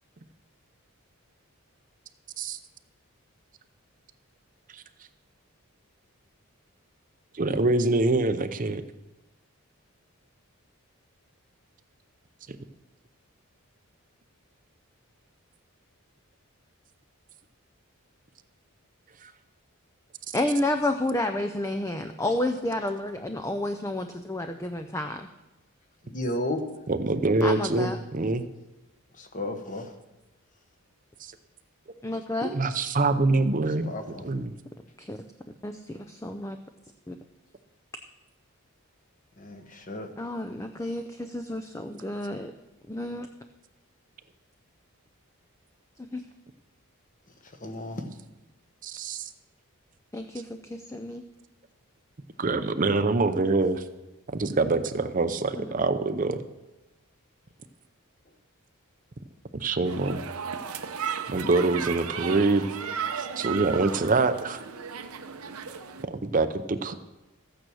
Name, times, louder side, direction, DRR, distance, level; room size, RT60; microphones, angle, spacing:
voice 1, 7.3-8.8 19.2-19.3 26.9-28.5 32.4-33.9 34.2-34.5 48.8-49.2 52.4-53.8 54.3-56.4 59.6-60.2 61.3-62.7 63.2-64.6 66.1-66.9, right 3 dB, 35° right, 10 dB, 0.6 m, -25 dB
voice 2, 20.3-25.3 27.4-28.0 32.0-32.5 35.0-35.2 35.6-36.6 37.1-37.2 40.2-42.5 42.9-43.3 46.1-46.2 50.1-51.2 55.5-55.7, left 1 dB, 15° left, 7 dB, 0.5 m, -30 dB
voice 3, 26.1-26.6 29.2-29.9 33.9-34.2 39.4-40.1 47.6-48.0, left 1 dB, 35° left, 6 dB, 1.3 m, -33 dB
sound 1, 59.8-66.0, right 7 dB, 80° right, 0.9 m, -35 dB
14.0 x 9.0 x 6.3 m, 1.0 s
head